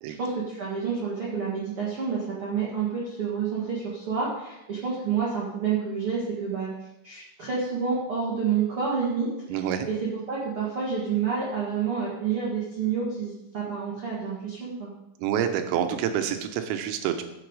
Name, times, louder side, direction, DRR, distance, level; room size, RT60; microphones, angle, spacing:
voice 1, 0.2-6.7 7.0-14.9, right 6 dB, 70° right, -5 dB, 1.3 m, -29 dB
voice 2, 9.5-9.9 15.2-17.2, right 9 dB, 90° right, 7 dB, 3.7 m, -27 dB
14.0 x 7.0 x 4.8 m, 0.91 s
omnidirectional pair, 5.9 m